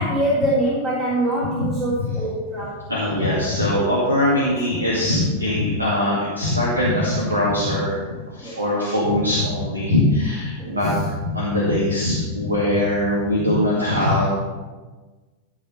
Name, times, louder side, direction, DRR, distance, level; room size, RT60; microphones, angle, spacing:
voice 1, 0.0-2.9 4.3-4.5 8.4-8.6 10.6-10.8, right 1 dB, 20° right, -7 dB, 3.1 m, -24 dB
voice 2, 2.9-7.9 8.3-14.3, left 1 dB, 80° right, -6 dB, 2.3 m, -21 dB
15.0 x 5.0 x 5.7 m, 1.3 s
figure-of-eight pair, 90°, 0 cm